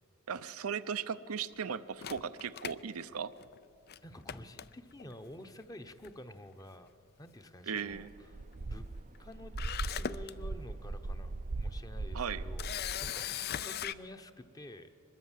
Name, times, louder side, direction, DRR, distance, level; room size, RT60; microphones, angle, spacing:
voice 1, 0.3-3.3 7.7-8.1 12.1-12.4, right 7 dB, 90° right, 11 dB, 0.7 m, -37 dB
Camera, 2.0-3.6 3.9-4.0 4.3-5.1 6.0-6.3 6.6-6.7 9.1-9.2 9.6-10.3 10.9-11.0 12.6-13.9, left 9 dB, 50° left, 0.4 m, -38 dB
voice 2, 4.0-6.9 7.2-8.4 8.7-8.9 9.2-12.7 13.0-14.9, left 1 dB, 15° left, 8 dB, 0.9 m, -49 dB
sound 1, 7.9-13.1, right 2 dB, 35° right, 0.5 m, -39 dB
24.0 x 21.0 x 7.5 m, 2.6 s
head